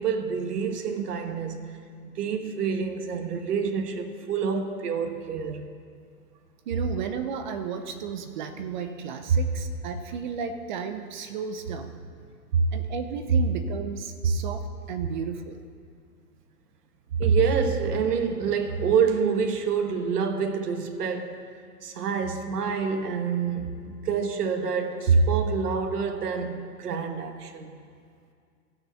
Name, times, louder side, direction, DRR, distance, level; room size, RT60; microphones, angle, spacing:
voice 1, 0.0-1.6 2.0-5.6 9.3-9.4 12.5-12.6 17.2-21.4 21.8-27.8, right 5 dB, 75° right, 1.3 m, -26 dB
voice 2, 6.7-11.9 12.7-15.6, right 6 dB, 30° right, 0.6 m, -34 dB
15.0 x 6.3 x 6.9 m
hypercardioid pair, 150°, 47 cm